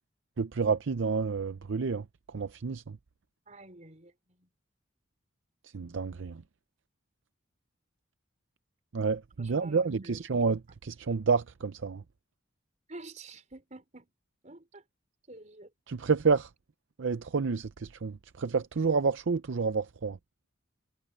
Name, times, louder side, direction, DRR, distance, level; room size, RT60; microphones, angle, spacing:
voice 1, 0.4-2.0 2.3-2.8 5.7-6.4 8.9-12.0 15.9-16.5 17.0-20.2, right 5 dB, 65° right, 0.6 m, -29 dB
voice 2, 3.5-4.5 9.4-10.4 12.9-14.1 14.4-14.8 15.3-15.7, right 2 dB, 40° right, 4.8 m, -49 dB
head